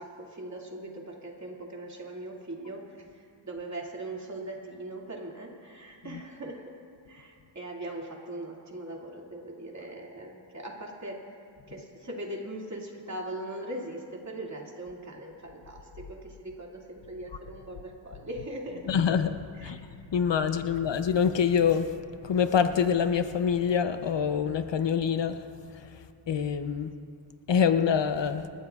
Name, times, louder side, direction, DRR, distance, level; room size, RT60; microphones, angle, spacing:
voice 1, 0.0-6.6 7.1-11.2 11.7-18.9 19.6-19.9, right 1 dB, 40° right, -1 dB, 2.4 m, -40 dB
voice 2, 18.9-19.8 20.1-21.9 22.2-25.4 26.3-26.9 27.5-28.5, left 7 dB, 70° left, 9 dB, 0.7 m, -25 dB
27.5 x 14.0 x 2.4 m, 2.4 s
wide cardioid pair, 100°, 45 cm